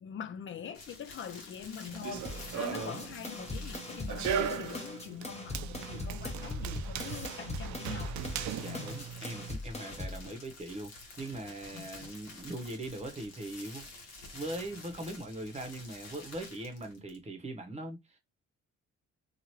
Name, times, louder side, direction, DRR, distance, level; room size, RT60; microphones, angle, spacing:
voice 1, 0.0-2.3 2.5-8.1 8.6-9.0 10.2-10.4 11.7-12.1, left 8 dB, 40° left, 0.4 m, -43 dB
sound 1, 0.7-5.2 7.7-17.3, left 2 dB, 60° left, 1.2 m, -50 dB
Run, 1.9-9.6, right 8 dB, 70° right, 0.5 m, -38 dB
sound 2, 2.2-10.2, left 2 dB, 20° left, 1.1 m, -41 dB
voice 2, 2.5-3.0 8.5-10.9 11.2-13.9 14.3-18.2, right 1 dB, 20° right, 0.9 m, -41 dB
2.9 x 2.5 x 2.9 m
cardioid pair, 90°, 30 cm